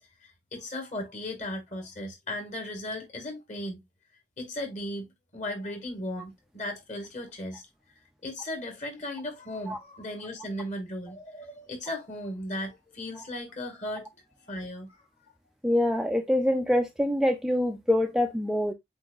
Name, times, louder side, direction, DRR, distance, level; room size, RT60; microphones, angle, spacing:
voice 1, 0.5-3.8 4.4-5.1 5.3-7.7 8.2-14.1 14.5-14.9, left 1 dB, 45° left, 1.7 m, -36 dB
voice 2, 15.6-18.7, left 1 dB, 5° right, 0.4 m, -25 dB
7.7 x 2.7 x 2.4 m
head